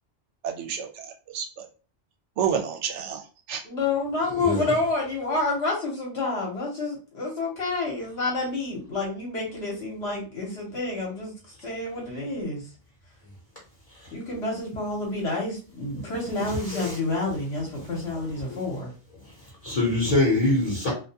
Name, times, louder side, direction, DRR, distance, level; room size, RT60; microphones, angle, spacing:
voice 1, 0.4-1.1 1.3-1.7 2.4-3.6, right 8 dB, 75° right, 0.9 m, -29 dB
voice 2, 3.6-11.3 11.6-12.6 14.1-18.9, left 3 dB, 65° left, 1.0 m, -29 dB
voice 3, 4.3-4.7 13.9-14.1 16.4-17.0 18.1-18.2 18.5-18.6 19.2-20.9, left 2 dB, 35° left, 0.8 m, -25 dB
2.4 x 2.2 x 2.7 m
omnidirectional pair, 1.2 m